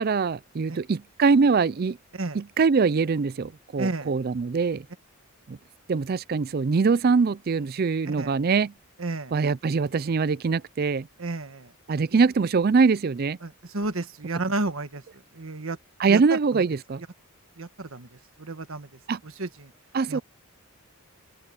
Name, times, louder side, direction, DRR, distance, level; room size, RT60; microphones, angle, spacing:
voice 1, 0.0-2.0 2.3-4.8 5.5-5.6 5.9-8.7 9.3-11.1 11.9-13.4 16.0-17.0 19.1-19.2 19.9-20.2, right 4 dB, 45° right, 0.4 m, -23 dB
voice 2, 3.8-4.1 8.0-8.4 9.0-9.3 11.2-11.7 12.1-12.2 13.4-15.0 15.3-15.8 16.1-16.6 17.6-19.7 20.1-20.2, right 2 dB, 65° right, 1.4 m, -32 dB
open air
head